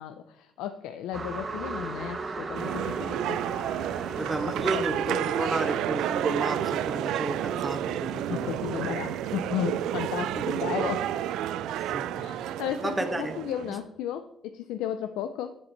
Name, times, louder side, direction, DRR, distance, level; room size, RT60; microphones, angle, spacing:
voice 1, 0.0-3.4 4.7-4.8 5.1-5.2 8.3-11.1 12.2-15.6, left 10 dB, 90° left, 10 dB, 0.5 m, -34 dB
sound 1, 1.1-10.3, right 3 dB, 40° right, 1.6 m, -39 dB
sound 2, 2.5-13.8, right 11 dB, 85° right, 0.4 m, -31 dB
voice 2, 4.1-8.6 11.9-12.1 12.8-13.3, right 2 dB, 20° right, 7 dB, 1.5 m, -32 dB
9.4 x 7.3 x 4.5 m, 0.84 s
supercardioid pair, 65°, 0 cm